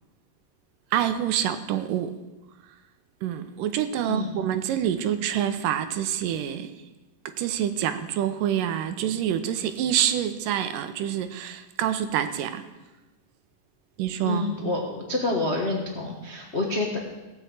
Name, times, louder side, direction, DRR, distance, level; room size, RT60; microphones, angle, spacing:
voice 1, 0.9-2.2 3.2-6.7 7.3-12.7 14.0-14.6, right 10 dB, 85° right, 2.4 m, -27 dB
voice 2, 14.2-17.0, left 2 dB, 50° left, 0.7 m, -28 dB
17.0 x 6.1 x 8.0 m
omnidirectional pair, 3.8 m